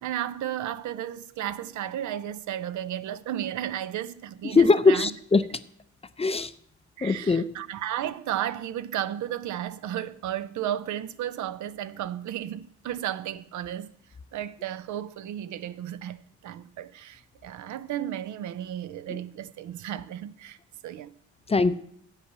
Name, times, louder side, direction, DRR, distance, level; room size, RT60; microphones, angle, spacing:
voice 1, 0.0-5.1 7.0-13.9 14.3-20.6 20.8-21.1, right 11 dB, 75° right, 0.7 m, -33 dB
voice 2, 4.4-5.4 6.2-6.5 7.0-7.5 19.1-19.2 21.5-21.7, left 3 dB, 20° left, 0.5 m, -21 dB
8.3 x 8.1 x 6.8 m
cardioid pair, 90°, 30 cm